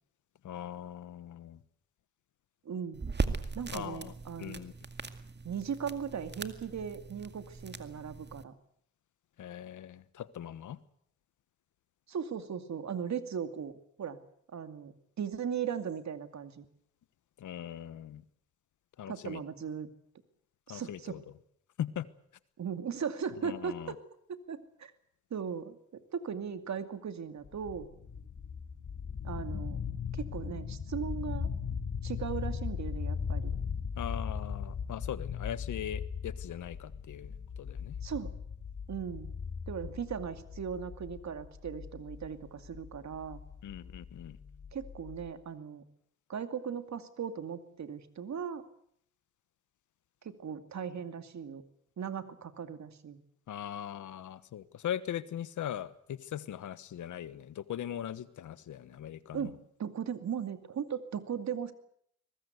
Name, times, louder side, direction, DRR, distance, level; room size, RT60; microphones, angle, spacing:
voice 1, 0.4-1.6 3.7-4.1 4.4-4.7 9.4-10.8 17.4-18.2 19.0-19.4 20.7-21.2 21.8-22.0 23.4-23.9 34.0-38.0 43.6-44.4 53.5-59.5, left 10 dB, 85° left, 15 dB, 1.3 m, -40 dB
voice 2, 2.6-3.1 3.5-4.7 5.4-8.5 12.1-13.7 14.0-14.2 14.5-16.7 19.1-19.9 20.7-21.2 22.6-24.0 24.3-24.9 25.3-27.9 29.2-29.8 30.1-31.5 32.0-33.5 38.0-38.3 38.9-39.4 39.7-43.4 44.7-45.8 46.3-48.7 50.2-51.6 52.0-53.2 59.3-61.7, right 7 dB, 65° right, 9 dB, 2.4 m, -38 dB
sound 1, 2.9-8.4, right 4 dB, 35° right, 2.1 m, -39 dB
sound 2, 27.4-45.3, left 6 dB, 60° left, 3.8 m, -39 dB
23.5 x 20.5 x 8.1 m, 0.68 s
cardioid pair, 65°, 30 cm